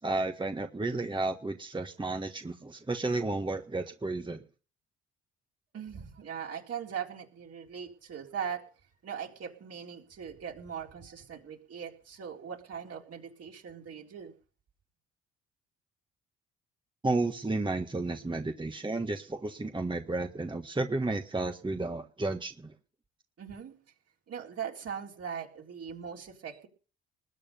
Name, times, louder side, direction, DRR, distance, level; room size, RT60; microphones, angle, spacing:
voice 1, 0.0-4.4 17.0-22.7, right 2 dB, 15° right, 5 dB, 1.6 m, -32 dB
voice 2, 5.7-8.7 9.0-14.3 23.4-23.7 24.3-26.7, right 7 dB, 50° right, 0 dB, 4.0 m, -40 dB
20.5 x 8.7 x 5.5 m, 0.39 s
hypercardioid pair, 50°, 31 cm